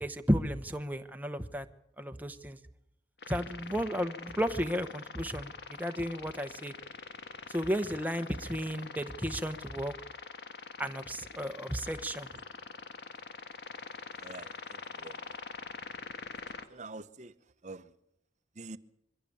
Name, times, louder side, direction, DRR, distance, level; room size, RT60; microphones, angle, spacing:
voice 1, 0.0-1.7 2.0-2.6 3.3-6.7 7.5-9.9 10.8-12.3, equal, 10° right, 1.0 m, -33 dB
sound 1, 3.2-16.6, left 4 dB, 65° left, 1.6 m, -45 dB
voice 2, 14.2-15.2 16.7-17.3 17.6-17.9 18.6-18.8, right 3 dB, 40° right, 0.9 m, -46 dB
23.0 x 16.0 x 8.5 m
head